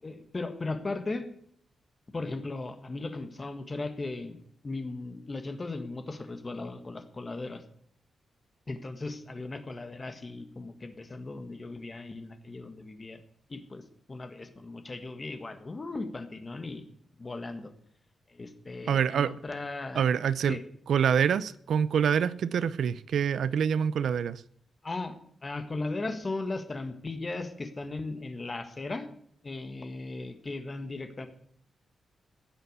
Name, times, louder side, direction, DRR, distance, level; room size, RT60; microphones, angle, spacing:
voice 1, 0.0-1.3 2.1-4.4 4.6-7.6 8.7-13.2 13.5-13.8 14.1-16.9 17.2-17.7 18.3-20.0 20.5-20.6 24.8-25.2 25.4-29.1 29.4-31.3, left 3 dB, 25° left, 1.6 m, -37 dB
voice 2, 18.9-19.3 20.0-20.6 20.9-24.4, right 7 dB, 70° right, 0.5 m, -26 dB
15.5 x 8.1 x 8.1 m
wide cardioid pair, 180°, 0 cm